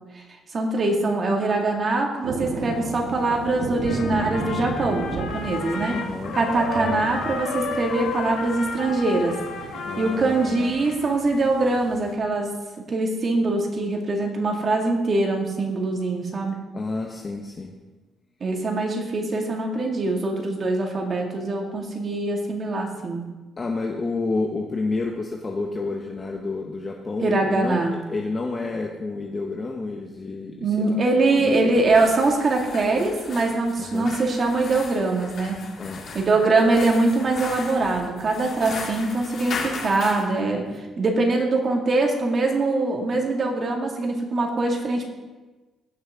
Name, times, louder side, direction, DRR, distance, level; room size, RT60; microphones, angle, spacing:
voice 1, 0.5-5.9 6.3-9.3 10.0-12.5 12.9-16.6 18.4-23.2 27.2-28.0 30.6-35.6 36.1-45.1, right 2 dB, 45° right, 1 dB, 2.2 m, -23 dB
sound 1, 2.2-12.2, right 4 dB, 85° right, 1.1 m, -34 dB
Trumpet, 3.8-11.2, left 5 dB, 85° left, 1.3 m, -33 dB
voice 2, 5.9-6.4 9.8-10.8 16.7-17.7 23.6-31.0 31.4-31.7 33.8-34.1 35.8-36.1, left 3 dB, 35° left, 1 dB, 1.0 m, -30 dB
sound 2, 31.7-40.3, left 4 dB, 60° left, 2.2 m, -37 dB
17.0 x 6.3 x 3.7 m, 1.2 s
cardioid pair, 90°, 0 cm